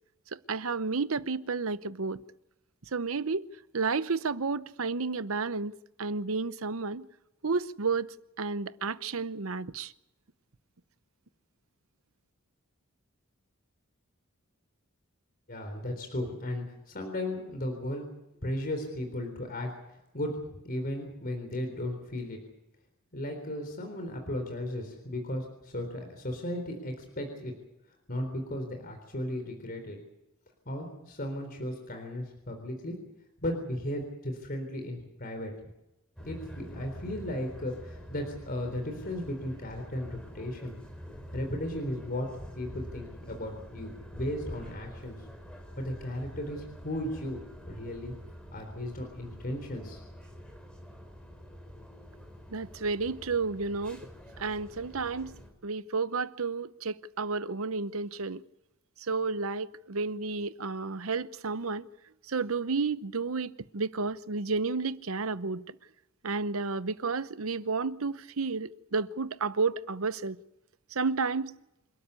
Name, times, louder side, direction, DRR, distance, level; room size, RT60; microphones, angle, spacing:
voice 1, 0.3-2.2 2.9-3.5 3.7-5.7 6.0-7.1 7.4-8.1 8.4-9.9 52.5-54.0 54.4-55.4 55.6-58.4 59.0-61.9 62.3-65.8 66.2-70.4 70.9-71.5, right 4 dB, 85° right, 0.8 m, -31 dB
voice 2, 15.5-18.1 18.4-19.7 20.1-20.4 20.6-22.4 23.1-27.5 28.1-30.0 30.7-33.0 33.4-35.5 36.2-40.8 41.3-42.3 42.6-45.2 45.8-48.1 48.5-50.0, left 1 dB, 45° left, 3.9 m, -35 dB
sound 1, 36.2-55.5, equal, 5° left, 4.4 m, -46 dB
27.5 x 13.0 x 9.7 m
head